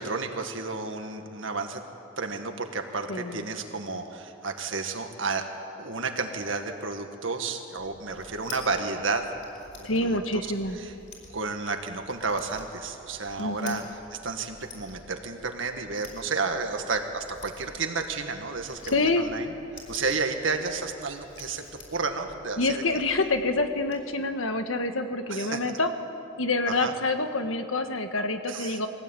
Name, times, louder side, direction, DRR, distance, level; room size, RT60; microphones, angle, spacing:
voice 1, 0.0-1.8 2.2-5.5 5.8-9.2 9.8-10.5 10.8-10.9 11.3-13.8 14.2-19.5 19.9-21.6 21.9-23.0 25.3-25.6 26.7-26.9 28.5-28.8, right 4 dB, 70° right, 5 dB, 1.9 m, -31 dB
voice 2, 3.1-3.4 9.8-10.8 13.4-13.8 18.8-19.3 22.6-25.9 26.4-28.9, left 2 dB, 85° left, 7 dB, 1.6 m, -27 dB
sound 1, 7.8-24.0, left 2 dB, 40° left, 4.8 m, -50 dB
22.5 x 17.0 x 9.1 m, 2.8 s
head